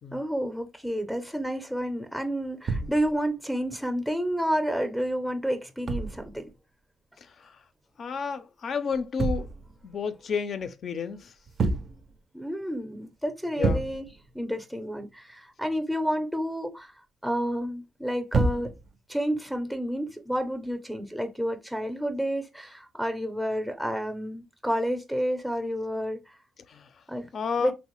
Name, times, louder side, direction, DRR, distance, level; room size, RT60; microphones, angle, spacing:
voice 1, 0.1-6.5 12.3-14.1 14.3-16.9 17.2-18.7 19.1-26.2 27.1-27.3 27.6-27.7, equal, ahead, 0.5 m, -30 dB
sound 1, 2.7-3.3 5.9-6.5 8.9-9.8 11.5-12.2 12.6-12.7 13.1-13.2 13.6-14.3 18.3-19.0 20.1-20.3, right 3 dB, 50° right, 0.4 m, -29 dB
voice 2, 7.2-7.6 8.0-9.5 9.8-11.3 13.6-13.9 26.7-26.9 27.3-27.7, left 6 dB, 55° left, 0.4 m, -31 dB
3.0 x 2.0 x 3.0 m
cardioid pair, 90°, 0 cm